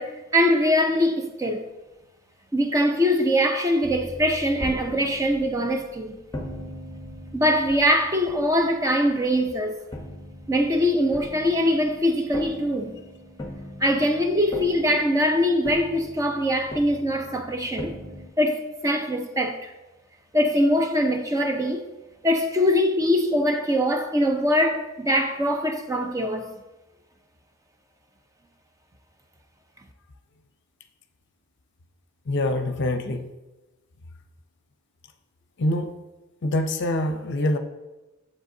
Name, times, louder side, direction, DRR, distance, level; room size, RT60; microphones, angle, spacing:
voice 1, 0.0-1.6 2.5-6.2 7.3-9.8 10.5-13.0 13.8-18.0 18.4-19.7 20.3-21.8 22.2-26.5, equal, 15° right, 0.5 m, -22 dB
sound 1, 3.8-9.5 9.9-18.3, left 1 dB, 20° left, 0.9 m, -40 dB
voice 2, 32.3-33.3 35.6-35.9 36.4-37.6, left 1 dB, 55° left, 0.6 m, -25 dB
7.7 x 7.2 x 2.7 m
head